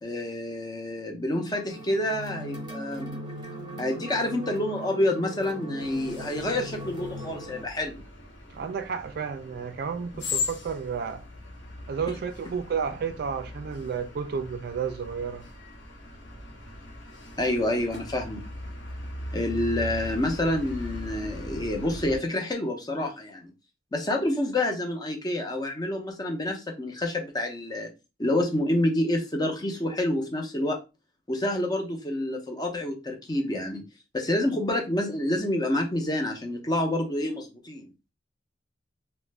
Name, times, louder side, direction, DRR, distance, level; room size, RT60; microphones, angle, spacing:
voice 1, 0.0-3.1 3.8-8.0 17.4-18.4 19.3-23.5 23.9-27.9 28.2-30.8 31.3-33.8 34.1-37.9, left 1 dB, 20° left, 0.5 m, -28 dB
sound 1, 1.4-7.6, right 1 dB, 25° right, 0.8 m, -39 dB
sound 2, 5.8-22.2, left 2 dB, 65° left, 0.9 m, -39 dB
voice 2, 8.5-11.2 11.9-15.4, right 6 dB, 55° right, 0.3 m, -32 dB
2.4 x 2.1 x 3.2 m
head